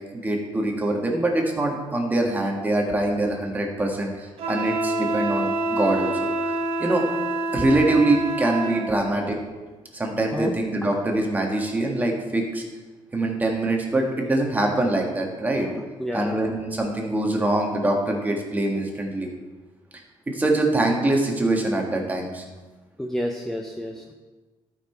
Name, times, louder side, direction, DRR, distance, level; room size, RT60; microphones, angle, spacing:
voice 1, 0.1-6.1 6.4-6.5 6.8-7.0 7.5-9.4 9.9-12.6 13.1-15.7 16.1-19.3 20.3-22.4, right 2 dB, 15° right, 1 dB, 1.6 m, -24 dB
Wind instrument woodwind instrument, 4.4-8.9, right 2 dB, 70° right, 1.3 m, -26 dB
voice 2, 15.7-16.5 23.0-24.1, equal, 5° left, 2 dB, 0.6 m, -30 dB
12.5 x 5.8 x 4.5 m, 1.3 s
cardioid pair, 130°, 10 cm